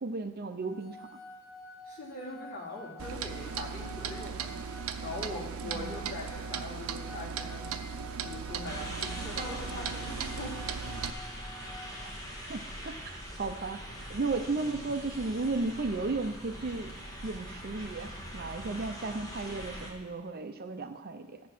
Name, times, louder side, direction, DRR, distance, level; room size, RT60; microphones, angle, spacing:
voice 1, 0.0-1.1 5.7-6.0 12.0-12.1 12.5-13.8 14.1-16.9 17.2-21.4, right 3 dB, 45° right, 8 dB, 0.6 m, -34 dB
sound 1, 0.6-11.9, left 2 dB, 5° right, 2.0 m, -49 dB
voice 2, 1.8-4.6 5.0-7.7 8.2-10.6, left 1 dB, 50° left, -6 dB, 3.7 m, -41 dB
Clock, 3.0-11.1, right 6 dB, 85° right, 0.6 m, -37 dB
sound 2, 8.6-19.9, equal, 15° left, 1.9 m, -42 dB
14.0 x 5.3 x 6.0 m, 1.1 s
head